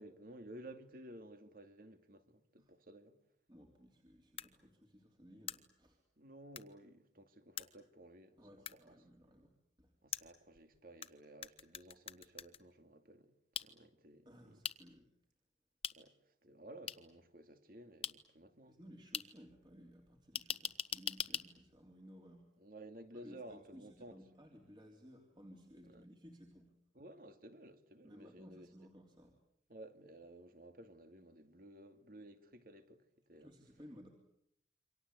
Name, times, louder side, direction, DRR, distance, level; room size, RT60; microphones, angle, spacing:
voice 1, 0.0-3.2 6.2-8.4 8.7-9.0 10.0-14.6 15.9-18.8 22.6-24.2 25.8-26.0 26.9-28.7 29.7-33.5, right 1 dB, 55° right, 2.4 m, -55 dB
voice 2, 3.5-6.0 8.4-9.5 9.8-9.9 14.3-15.1 18.7-22.5 23.1-26.7 28.0-29.4 33.4-34.1, equal, 25° right, 3.5 m, -58 dB
sound 1, 4.4-4.5 5.5-5.6 6.6-6.7 7.6-7.7 8.7-8.8 10.1-11.1 11.4-12.6 13.6-13.7 14.6-14.8 15.8-15.9 16.9-17.0 18.0-18.1 19.1-19.2 20.4-21.4, left 8 dB, 30° left, 1.2 m, -40 dB
28.0 x 25.0 x 8.4 m
head